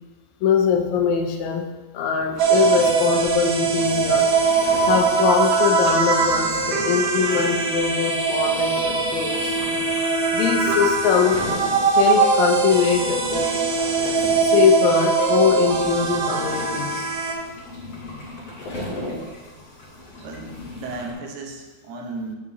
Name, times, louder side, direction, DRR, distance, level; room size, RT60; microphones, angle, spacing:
voice 1, 0.4-1.7 1.9-4.3 4.9-9.6 10.3-11.4 12.0-13.2 14.4-17.1, left 7 dB, 80° left, 4 dB, 2.0 m, -22 dB
sound 1, 2.3-21.1, left 1 dB, 50° left, 2.5 m, -37 dB
sound 2, 2.4-17.3, right 4 dB, 60° right, 1.6 m, -21 dB
voice 2, 20.2-22.4, right 3 dB, 90° right, 2 dB, 2.4 m, -35 dB
8.5 x 7.6 x 2.7 m, 1.2 s
omnidirectional pair, 3.4 m